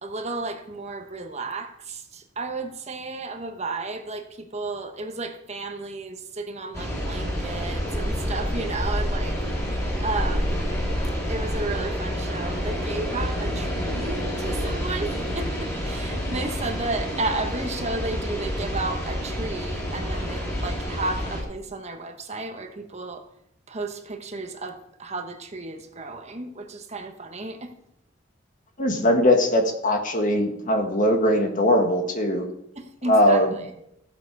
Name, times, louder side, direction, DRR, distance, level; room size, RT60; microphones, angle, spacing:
voice 1, 0.0-9.4 10.0-10.6 11.0-23.2 23.7-27.7 32.8-33.4, right 3 dB, 35° right, 5 dB, 1.2 m, -33 dB
sound 1, 6.7-21.4, equal, 15° left, 4.2 m, -28 dB
voice 2, 28.8-32.4 33.1-33.5, left 1 dB, 45° left, 4 dB, 1.6 m, -20 dB
15.0 x 7.6 x 4.7 m, 0.78 s
head